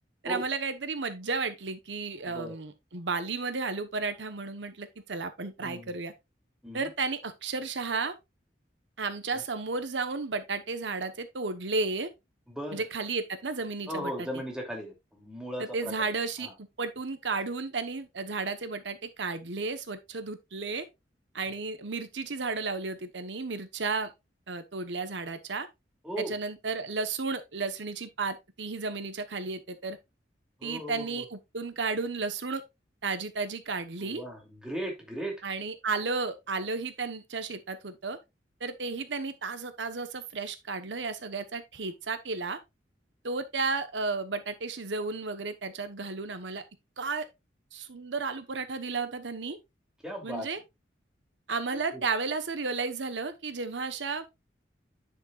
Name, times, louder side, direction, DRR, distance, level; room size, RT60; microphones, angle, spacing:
voice 1, 0.2-6.1 6.7-8.1 9.0-12.1 12.7-14.3 15.6-20.9 21.3-24.1 24.5-25.7 26.2-30.0 30.6-32.6 33.0-34.2 35.4-38.2 38.6-42.6 43.2-46.6 47.0-47.3 47.7-49.6 50.2-50.6 51.5-54.2, right 4 dB, 90° right, 1.0 m, -33 dB
voice 2, 5.6-5.9 6.6-6.9 9.3-9.4 12.5-12.8 13.9-15.9 16.4-16.5 26.0-26.3 30.6-31.2 34.0-35.3 50.0-50.5 51.7-52.0, equal, 5° right, 2.7 m, -37 dB
10.0 x 6.6 x 2.4 m
head